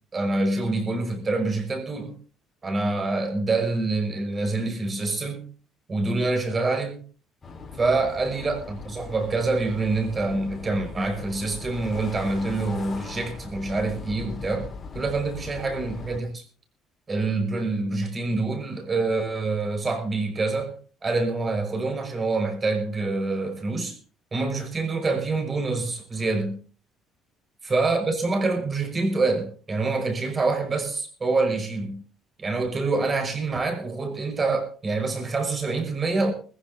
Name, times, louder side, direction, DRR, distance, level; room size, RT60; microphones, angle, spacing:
voice 1, 0.1-2.2 2.6-5.5 5.9-7.0 7.8-14.7 14.9-16.4 17.1-20.8 21.0-23.9 24.3-26.6 27.7-32.0 32.4-36.3, right 3 dB, 25° right, 5.7 m, -26 dB
sound 1, 7.4-16.2, left 4 dB, 30° left, 4.6 m, -39 dB
21.5 x 15.0 x 2.8 m
cardioid pair, 125°, 0 cm